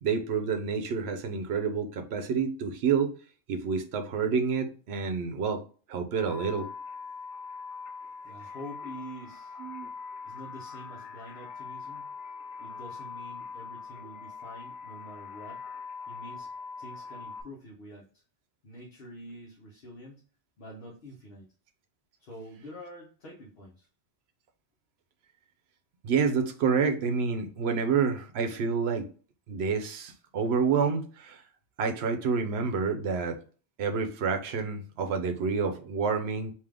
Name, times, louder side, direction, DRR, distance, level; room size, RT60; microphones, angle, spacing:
voice 1, 0.0-3.1 3.5-5.6 5.9-6.7 9.6-9.9 26.0-29.1 29.5-31.4 31.8-33.4 33.8-36.5, right 5 dB, 70° right, 6 dB, 0.9 m, -28 dB
sound 1, 6.1-17.4, left 5 dB, 80° left, 0.9 m, -42 dB
voice 2, 8.2-9.6 10.2-12.1 12.6-15.6 16.1-16.5 16.8-18.2 18.6-20.2 20.6-21.5 22.2-23.9, equal, 60° left, -2 dB, 1.1 m, -46 dB
3.6 x 2.8 x 3.3 m, 0.40 s
omnidirectional pair, 1.2 m